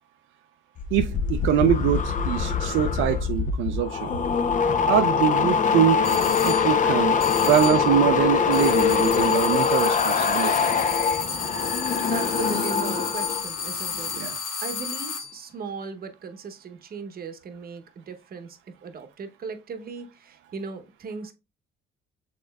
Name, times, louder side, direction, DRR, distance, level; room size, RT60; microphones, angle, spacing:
sound 1, 0.8-13.4 13.7-14.1, left 6 dB, 40° left, 0.6 m, -23 dB
voice 1, 0.9-4.1 4.9-6.2 6.4-10.5 14.1-14.4, right 10 dB, 85° right, 0.4 m, -24 dB
sound 2, 6.0-6.7 7.2-7.9 8.5-15.4, left 6 dB, 85° left, 1.3 m, -32 dB
voice 2, 12.0-14.1 14.6-21.3, right 5 dB, 50° right, 0.8 m, -37 dB
6.4 x 3.7 x 2.2 m
cardioid pair, 90°, 20 cm